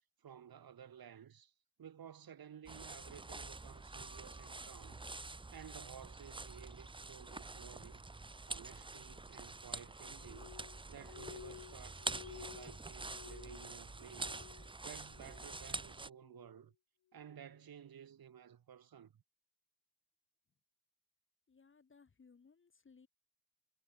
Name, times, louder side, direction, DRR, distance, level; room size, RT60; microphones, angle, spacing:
voice 1, 0.2-1.5 1.8-5.0 5.5-8.0 8.5-10.5 10.9-14.4 14.8-16.7 17.1-19.2, right 8 dB, 50° right, 2.5 m, -55 dB
sound 1, 2.7-16.1, right 3 dB, 10° right, 0.8 m, -47 dB
Glass, 10.2-14.8 15.0-15.7 16.1-16.6 17.2-17.5, left 13 dB, 50° left, 0.9 m, -55 dB
voice 2, 21.5-23.1, left 5 dB, 25° left, 1.4 m, -64 dB
supercardioid pair, 60°, 47 cm